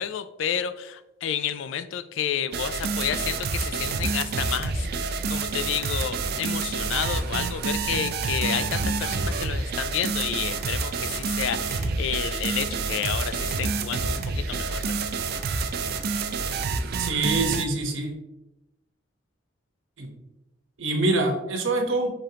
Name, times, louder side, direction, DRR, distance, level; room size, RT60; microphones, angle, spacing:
voice 1, 0.0-15.1, left 9 dB, 65° left, 12 dB, 0.3 m, -30 dB
sound 1, 2.5-17.6, right 4 dB, 50° right, 0.4 m, -28 dB
voice 2, 17.0-18.1 20.0-20.1 20.8-22.1, right 2 dB, 75° right, 3 dB, 0.9 m, -25 dB
5.1 x 3.7 x 2.8 m, 0.92 s
head